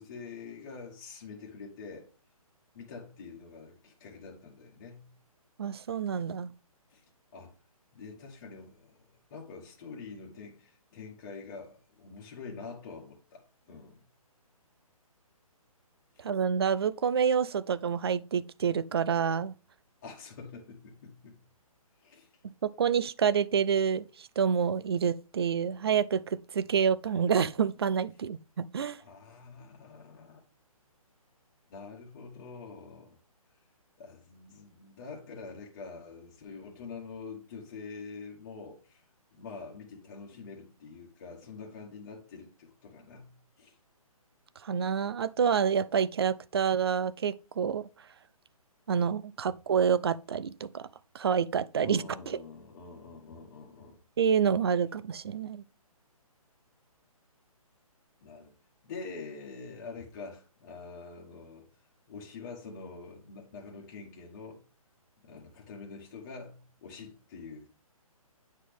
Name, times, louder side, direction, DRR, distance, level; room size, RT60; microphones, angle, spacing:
voice 1, 0.0-2.1 2.7-5.1 6.9-7.0 7.3-7.5 7.9-14.0 16.1-16.3 20.0-21.4 22.0-22.3 29.0-30.4 31.7-33.2 34.0-39.0 39.3-43.8 51.8-54.0 58.2-58.5 58.8-61.7 62.1-64.6 65.2-67.7, left 4 dB, 30° left, 1.3 m, -46 dB
voice 2, 5.6-6.5 16.2-19.5 22.8-29.0 44.6-47.9 48.9-50.9 51.1-52.4 54.2-55.6, right 7 dB, 45° right, 0.4 m, -28 dB
9.3 x 4.1 x 3.3 m
hypercardioid pair, 160°, 19 cm